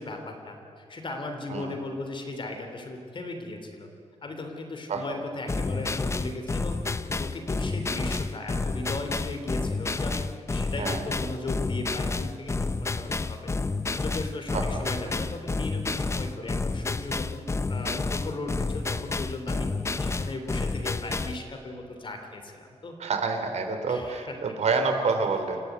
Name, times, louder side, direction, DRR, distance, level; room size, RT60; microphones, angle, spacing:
voice 1, 0.0-3.9 4.2-6.8 7.2-10.2 10.5-13.5 13.9-19.7 20.0-22.9 23.9-24.4, left 2 dB, 45° left, 4 dB, 3.1 m, -37 dB
sound 1, 5.5-21.4, left 3 dB, 20° left, 0.7 m, -30 dB
voice 2, 23.0-25.6, right 4 dB, 65° right, 6 dB, 3.1 m, -28 dB
27.5 x 15.0 x 9.5 m, 2.4 s
wide cardioid pair, 130°, 12 cm